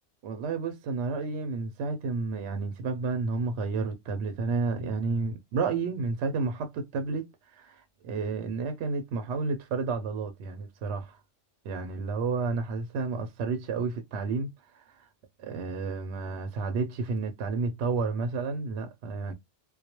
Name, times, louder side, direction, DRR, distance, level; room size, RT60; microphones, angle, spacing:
voice 1, 0.2-11.2 11.6-14.5 14.7-15.1 15.4-19.3, right 4 dB, 65° right, 0.7 m, -31 dB
2.3 x 2.1 x 2.8 m
omnidirectional pair, 1.4 m